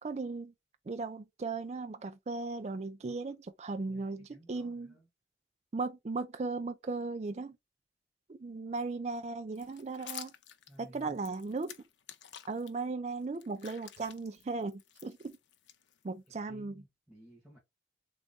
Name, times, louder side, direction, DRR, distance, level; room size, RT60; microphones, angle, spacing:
voice 1, 0.0-0.5 0.9-4.9 5.7-7.6 8.3-10.3 10.8-11.8 12.5-15.4 16.0-16.8, right 3 dB, 35° right, 0.4 m, -37 dB
voice 2, 3.9-5.1 10.7-11.2 16.3-17.6, equal, 5° right, 1.7 m, -56 dB
sound 1, 9.5-12.7 13.2-16.3, left 10 dB, 85° left, 0.6 m, -50 dB
3.8 x 3.5 x 3.8 m
head